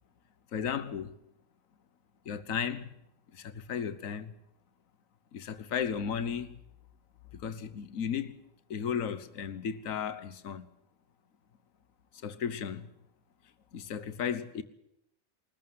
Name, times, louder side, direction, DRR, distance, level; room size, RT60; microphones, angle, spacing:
voice 1, 0.5-1.2 2.2-2.9 3.3-4.3 5.3-6.6 7.3-8.4 8.7-10.7 12.2-12.9 13.7-14.6, left 7 dB, 70° left, 1.4 m, -35 dB
21.0 x 14.5 x 9.3 m
omnidirectional pair, 1.4 m